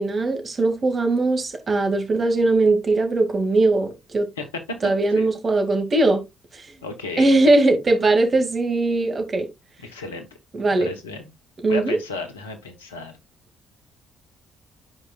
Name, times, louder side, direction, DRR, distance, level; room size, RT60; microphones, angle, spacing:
voice 1, 0.0-4.3 4.8-6.2 6.5-6.7 7.2-9.5 10.5-10.9 11.6-12.0, right 2 dB, 40° right, 2.2 m, -20 dB
voice 2, 4.4-4.8 5.1-5.3 6.8-7.3 9.8-10.3 10.8-11.3 11.7-13.1, left 3 dB, 90° left, 1.1 m, -33 dB
12.0 x 5.0 x 2.4 m
hypercardioid pair, 45°, 0 cm